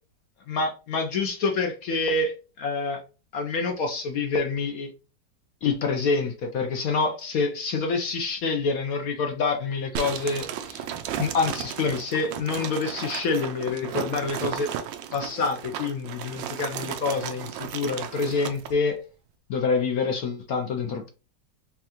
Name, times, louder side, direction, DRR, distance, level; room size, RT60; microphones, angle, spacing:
voice 1, 0.5-3.0 3.3-4.9 5.6-10.9 11.2-14.7 15.1-19.0 19.5-21.1, left 4 dB, 65° left, 1.0 m, -27 dB
sound 1, 10.0-18.7, right 9 dB, 85° right, 1.3 m, -34 dB
5.5 x 2.3 x 2.9 m
omnidirectional pair, 1.9 m